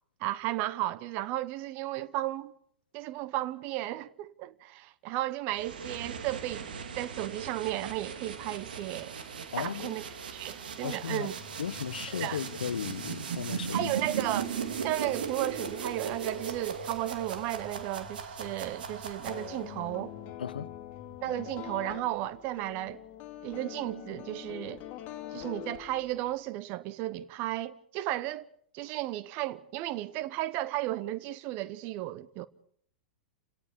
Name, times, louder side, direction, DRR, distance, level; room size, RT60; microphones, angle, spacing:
voice 1, 0.2-2.5 2.9-6.7 7.0-9.1 9.6-10.0 10.3-11.3 12.1-12.4 13.7-14.5 14.8-20.1 21.2-23.0 23.4-24.8 25.3-28.5 28.7-32.5, right 15 dB, 40° right, 1.0 m, -34 dB
sound 1, 5.5-19.8, right 6 dB, 60° right, 2.5 m, -38 dB
voice 2, 9.5-10.0 10.8-11.3 11.6-13.9 20.4-20.7, left 8 dB, 65° left, 0.8 m, -35 dB
sound 2, 11.4-21.8, left 5 dB, 5° left, 2.6 m, -52 dB
sound 3, 19.3-26.4, left 12 dB, 35° left, 2.5 m, -44 dB
28.5 x 18.0 x 5.3 m
figure-of-eight pair, 100°, 5 cm